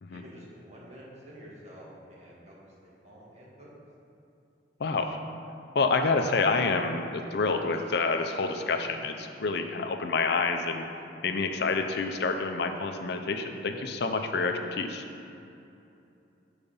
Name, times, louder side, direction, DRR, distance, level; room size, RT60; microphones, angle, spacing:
voice 1, 0.1-3.7, equal, 40° right, -6 dB, 1.7 m, -49 dB
voice 2, 4.8-5.2 5.7-10.8 11.2-15.0, left 4 dB, 65° left, 6 dB, 0.5 m, -28 dB
7.0 x 4.8 x 5.4 m, 2.7 s
head